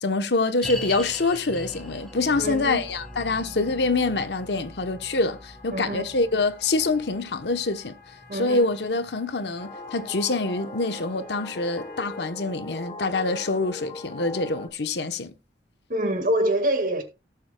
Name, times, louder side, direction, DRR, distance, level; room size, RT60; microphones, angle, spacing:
voice 1, 0.0-8.0 8.3-15.3, left 3 dB, 70° left, 0.9 m, -25 dB
sound 1, 0.6-11.9 12.2-12.3 12.9-13.0, left 1 dB, 5° left, 1.3 m, -42 dB
sound 2, 1.7-12.2, left 5 dB, 50° left, 1.4 m, -51 dB
voice 2, 2.4-2.9 5.7-6.1 8.3-8.6 15.9-17.0, right 1 dB, 45° right, 1.8 m, -25 dB
sound 3, 9.6-14.7, left 2 dB, 30° left, 0.9 m, -39 dB
17.5 x 7.0 x 2.3 m
head